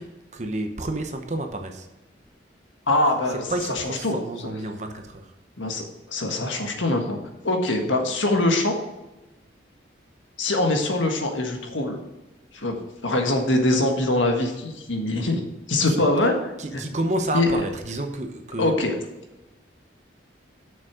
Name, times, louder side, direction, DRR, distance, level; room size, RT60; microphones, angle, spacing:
voice 1, 0.0-1.9 3.3-5.3 15.9-16.0 16.6-18.8, right 1 dB, 40° right, 5 dB, 0.9 m, -30 dB
voice 2, 2.9-3.4 4.0-4.1 5.6-7.2 7.4-8.7 10.4-12.0 12.5-12.8 13.0-15.4 15.7-16.4 17.3-17.5 18.6-18.9, left 2 dB, 90° left, 3 dB, 1.6 m, -23 dB
7.0 x 6.3 x 6.2 m, 1.0 s
head